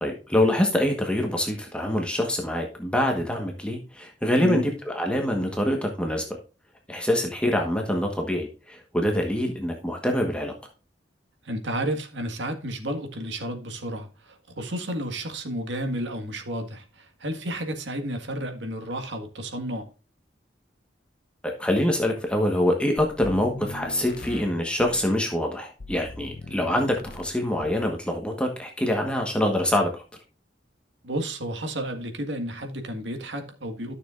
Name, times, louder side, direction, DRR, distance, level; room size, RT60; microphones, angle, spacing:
voice 1, 0.0-6.2 6.9-10.5 21.4-29.9, left 1 dB, 5° left, 1.3 m, -25 dB
voice 2, 11.5-19.9 31.0-33.9, right 1 dB, 75° right, 1.7 m, -32 dB
sound 1, 23.0-25.1 25.8-27.4 27.6-28.0, left 3 dB, 55° left, 0.8 m, -40 dB
12.5 x 6.6 x 2.5 m
head